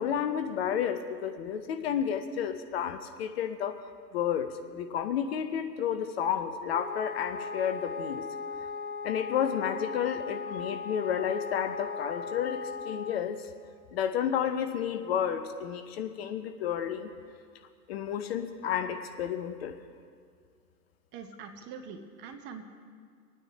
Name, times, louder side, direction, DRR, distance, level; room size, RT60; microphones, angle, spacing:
voice 1, 0.0-3.8 4.1-8.3 9.0-13.5 13.9-17.1 17.9-19.8, left 8 dB, 40° left, 8 dB, 0.7 m, -31 dB
Wind instrument woodwind instrument, 6.7-13.3, left 5 dB, 20° left, 1.9 m, -38 dB
voice 2, 21.1-22.6, right 6 dB, 20° right, 5 dB, 0.9 m, -43 dB
25.5 x 9.4 x 3.3 m, 2.1 s
figure-of-eight pair, 110°, 50 cm